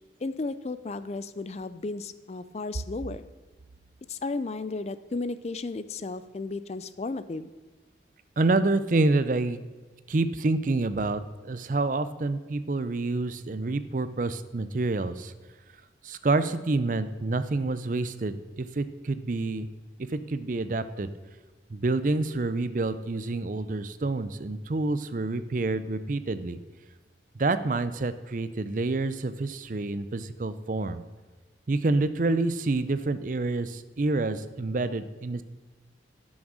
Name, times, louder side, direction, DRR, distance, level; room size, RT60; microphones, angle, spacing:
voice 1, 0.2-3.2 4.1-7.5, left 3 dB, 35° left, 13 dB, 0.4 m, -34 dB
voice 2, 8.4-9.6 10.1-15.3 16.0-19.7 20.0-21.1 21.7-26.6 27.3-31.0 31.7-35.4, right 2 dB, 45° right, 12 dB, 0.5 m, -28 dB
11.0 x 6.3 x 6.2 m, 1.3 s
head